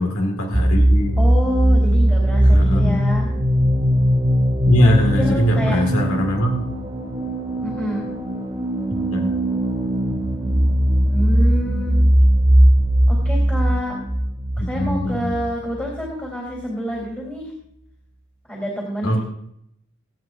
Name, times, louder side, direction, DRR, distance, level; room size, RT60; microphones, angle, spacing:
voice 1, 0.0-1.1 2.4-3.0 4.7-6.7 8.9-9.3 14.6-15.4 19.0-19.2, equal, 85° left, 2 dB, 2.0 m, -21 dB
sound 1, 0.5-16.1, equal, 20° right, 2.0 m, -19 dB
voice 2, 1.2-3.3 4.8-5.8 7.6-8.1 10.5-10.6 11.1-12.0 13.1-14.0 14.6-17.5 18.5-19.2, equal, 10° left, -4 dB, 3.5 m, -28 dB
25.5 x 9.2 x 2.6 m, 0.73 s
head